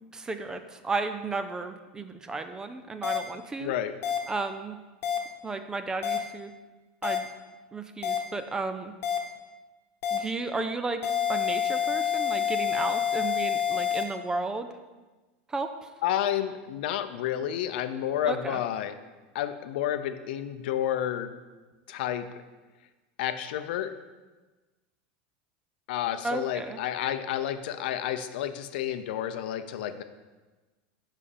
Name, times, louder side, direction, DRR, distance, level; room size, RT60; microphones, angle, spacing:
voice 1, 0.1-3.7 4.3-4.8 5.4-6.5 7.0-7.3 7.7-8.9 10.1-11.0 11.3-14.7 15.5-15.7 18.3-18.6 26.2-26.8, right 3 dB, 10° right, 9 dB, 0.4 m, -33 dB
sound 1, 3.0-3.2 4.0-4.2 5.0-5.2 6.0-6.2 7.0-7.2 8.0-8.2 9.0-9.2 10.0-10.2 11.0-14.0, left 8 dB, 40° left, 1.1 m, -27 dB
voice 2, 3.6-3.9 16.0-19.0 19.3-21.3 21.9-22.3 23.2-23.9 25.9-30.0, left 11 dB, 75° left, 10 dB, 0.6 m, -30 dB
7.4 x 5.7 x 5.1 m, 1.2 s
supercardioid pair, 150°, 5 cm